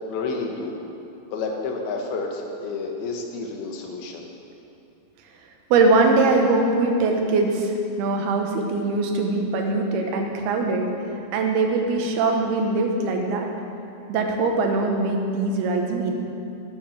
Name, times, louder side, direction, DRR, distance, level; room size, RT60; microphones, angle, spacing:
voice 1, 0.1-0.8 1.3-4.2, left 4 dB, 80° left, 2 dB, 3.1 m, -30 dB
voice 2, 5.7-10.9 11.3-13.5 14.1-16.1, right 3 dB, 90° right, 3 dB, 3.1 m, -22 dB
12.5 x 8.6 x 6.5 m, 2.7 s
omnidirectional pair, 4.4 m